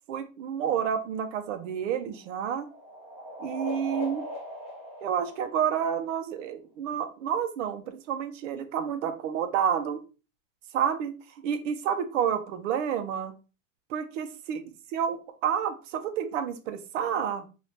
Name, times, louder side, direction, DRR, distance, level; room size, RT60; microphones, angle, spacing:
voice 1, 0.1-2.7 3.4-4.2 5.0-10.0 10.7-13.3 13.9-14.6 14.9-17.4, right 8 dB, 70° right, 8 dB, 0.9 m, -29 dB
sound 1, 1.5-6.2, equal, 15° right, 0.7 m, -40 dB
4.2 x 2.7 x 3.3 m, 0.31 s
supercardioid pair, 160°, 39 cm